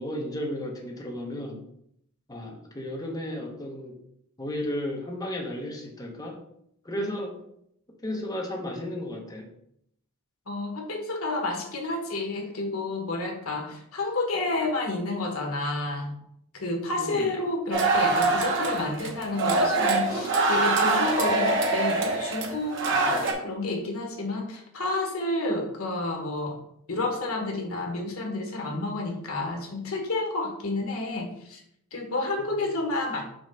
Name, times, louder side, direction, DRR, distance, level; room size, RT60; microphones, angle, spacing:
voice 1, 0.0-1.6 2.3-4.0 4.4-6.4 6.8-7.3 8.0-9.5 17.0-17.3 22.9-23.2, left 1 dB, 15° left, -1 dB, 1.0 m, -34 dB
voice 2, 10.5-16.1 16.5-26.6 26.9-31.6 31.9-33.2, left 2 dB, 70° left, 1 dB, 1.4 m, -30 dB
sound 1, 17.7-23.3, right 3 dB, 55° right, 1.1 m, -24 dB
6.1 x 3.2 x 5.6 m, 0.72 s
head